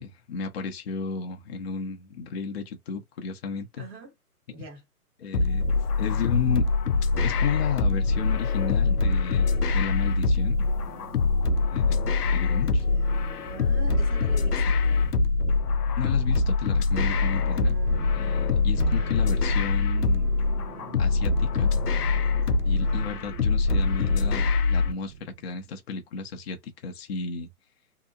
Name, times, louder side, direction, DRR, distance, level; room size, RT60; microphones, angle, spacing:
voice 1, 0.0-3.9 5.2-6.7 7.2-10.7 11.7-12.0 12.3-12.8 16.0-17.7 18.1-20.3 21.0-21.7 22.6-27.5, left 6 dB, 45° left, 0.7 m, -33 dB
voice 2, 3.8-4.1 4.5-4.8 12.8-15.1 17.2-18.2 18.6-19.2 22.7-23.1, right 3 dB, 10° right, 0.8 m, -45 dB
sound 1, 5.3-24.9, left 4 dB, 90° left, 0.6 m, -24 dB
sound 2, 9.8-25.7, right 8 dB, 55° right, 0.6 m, -45 dB
sound 3, 17.0-22.6, right 8 dB, 75° right, 0.9 m, -44 dB
2.7 x 2.1 x 2.4 m
hypercardioid pair, 140°, 46 cm